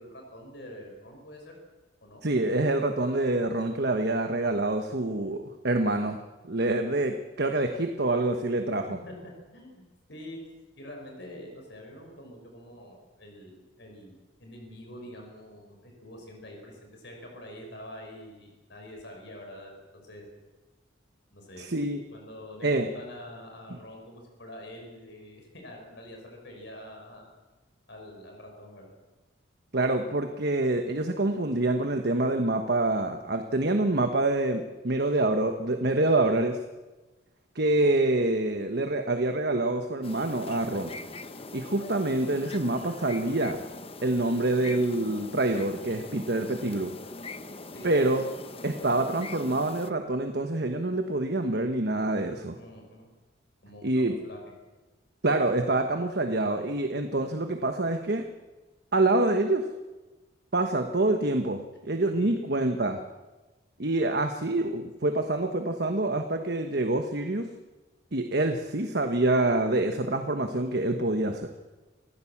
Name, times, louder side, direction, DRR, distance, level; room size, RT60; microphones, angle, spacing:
voice 1, 0.0-1.6 2.0-2.2 8.9-9.8 10.1-10.4 10.8-20.2 21.3-21.7 22.1-27.3 27.9-28.9 37.7-37.9 47.7-47.9 52.6-53.1 53.6-54.4 61.7-61.8 62.1-62.4, left 1 dB, 60° left, 1 dB, 5.8 m, -46 dB
voice 2, 2.2-6.2 6.4-8.9 21.6-22.0 22.6-22.9 29.7-36.6 37.5-40.9 41.5-43.6 44.0-46.9 47.8-48.2 48.6-52.6 53.8-54.1 55.2-58.2 58.9-59.6 60.5-63.0 63.8-67.5 68.1-71.5, right 2 dB, 55° right, 5 dB, 1.3 m, -26 dB
sound 1, 40.0-49.9, left 3 dB, 30° left, 0.9 m, -42 dB
26.0 x 15.5 x 7.3 m, 1.2 s
head